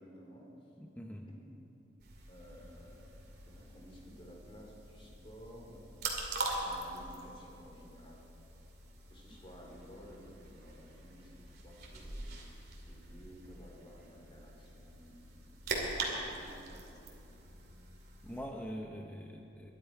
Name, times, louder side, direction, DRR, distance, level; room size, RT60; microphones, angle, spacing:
voice 1, 0.0-0.7 1.2-1.4 2.3-3.1 3.5-6.0 6.6-8.2 9.1-11.3 11.6-12.4 12.8-15.4 15.6-17.3, equal, 30° left, -2 dB, 3.3 m, -54 dB
voice 2, 0.8-1.3 9.3-9.4 18.2-19.7, equal, 10° left, 1 dB, 0.7 m, -44 dB
sound 1, 2.0-18.4, right 2 dB, 55° right, 2.5 m, -43 dB
22.5 x 11.0 x 4.8 m, 2.7 s
head